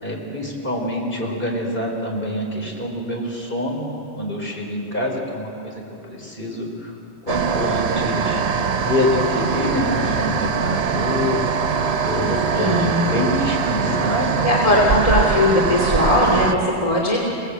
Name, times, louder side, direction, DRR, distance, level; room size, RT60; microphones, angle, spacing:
voice 1, 0.0-6.9 7.3-8.4 8.8-11.8 12.0-14.4, left 1 dB, 55° left, 0 dB, 4.3 m, -26 dB
sound 1, 7.3-16.5, right 6 dB, 70° right, 1.2 m, -22 dB
voice 2, 12.5-13.2 14.4-17.2, left 1 dB, 30° left, -3 dB, 3.1 m, -19 dB
29.0 x 18.0 x 8.2 m, 2.9 s
omnidirectional pair, 1.1 m